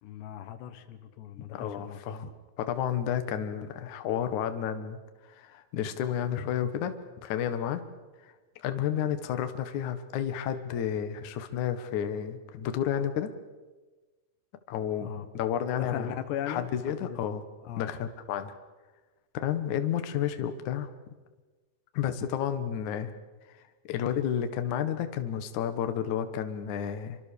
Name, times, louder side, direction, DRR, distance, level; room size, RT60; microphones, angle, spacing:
voice 1, 0.0-2.0 15.0-15.3 15.8-16.7 17.0-17.2 17.7-17.9, left 10 dB, 90° left, 10 dB, 3.6 m, -37 dB
voice 2, 1.4-2.3 2.6-5.0 5.3-6.9 7.2-7.8 8.2-8.3 8.6-13.3 14.7-16.1 16.5-17.4 17.8-18.5 19.3-20.9 21.9-23.1 23.9-27.2, left 9 dB, 55° left, 9 dB, 2.5 m, -31 dB
26.5 x 24.5 x 7.0 m, 1.3 s
omnidirectional pair, 4.8 m